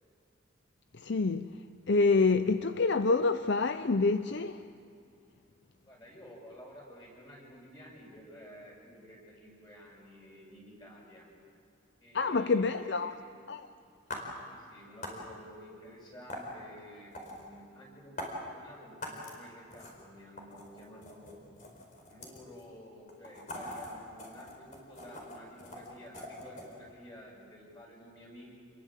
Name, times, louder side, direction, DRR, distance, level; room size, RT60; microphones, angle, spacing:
voice 1, 1.0-1.5 1.9-4.7 12.1-13.1 13.5-13.7, left 3 dB, 55° left, 0.6 m, -27 dB
voice 2, 5.8-11.3 12.0-13.2 14.5-21.4 22.1-28.5, equal, 20° left, 7.1 m, -52 dB
sound 1, 14.1-14.2 15.0-15.2 16.3-16.4 17.1-17.4 18.2-18.3 19.0-19.4 19.7-20.0 20.4-22.6 23.1-26.7, left 1 dB, 40° left, 4.5 m, -42 dB
28.0 x 22.0 x 7.6 m
head